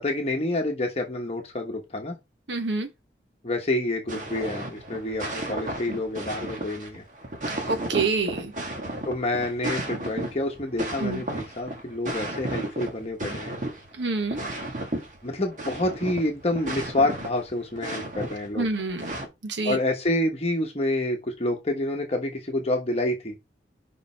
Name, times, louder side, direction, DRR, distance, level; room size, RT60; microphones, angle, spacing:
voice 1, 0.0-2.2 3.4-7.0 9.0-13.6 15.2-18.7 19.6-23.4, left 1 dB, 35° left, 1.1 m, -28 dB
voice 2, 2.5-2.9 7.7-8.5 11.0-11.2 13.9-14.4 18.5-19.1 19.4-19.8, right 3 dB, 90° right, 1.3 m, -27 dB
sound 1, 4.1-19.3, right 1 dB, 45° right, 1.5 m, -34 dB
5.3 x 5.2 x 4.4 m
head